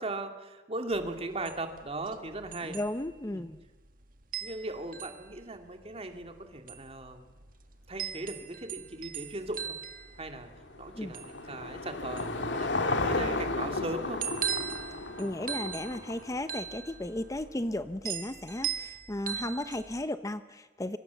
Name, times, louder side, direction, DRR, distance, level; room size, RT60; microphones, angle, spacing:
voice 1, 0.0-2.8 3.3-3.4 4.4-7.3 7.9-9.8 10.2-10.5 10.8-12.7 13.0-14.2, right 2 dB, 35° right, 5 dB, 2.5 m, -38 dB
sound 1, 0.9-20.0, right 9 dB, 50° right, 1.7 m, -40 dB
voice 2, 2.6-3.6 11.0-11.1 15.2-21.0, left 1 dB, 20° left, 11 dB, 0.7 m, -35 dB
Car passing by / Engine, 10.3-16.8, left 2 dB, 90° left, 2.1 m, -33 dB
25.5 x 24.0 x 7.1 m, 1.3 s
head